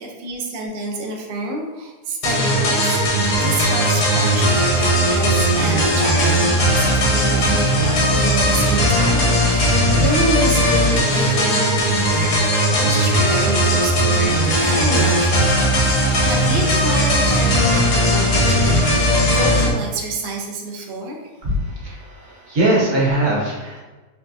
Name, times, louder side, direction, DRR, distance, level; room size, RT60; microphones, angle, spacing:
voice 1, 0.0-12.4 12.7-21.5, right 2 dB, 80° right, 0 dB, 0.5 m, -28 dB
sound 1, 2.2-19.7, equal, 80° left, 1.5 m, -17 dB
voice 2, 21.4-23.8, right 1 dB, 50° right, -5 dB, 1.4 m, -21 dB
4.6 x 3.2 x 2.7 m, 1.2 s
omnidirectional pair, 1.8 m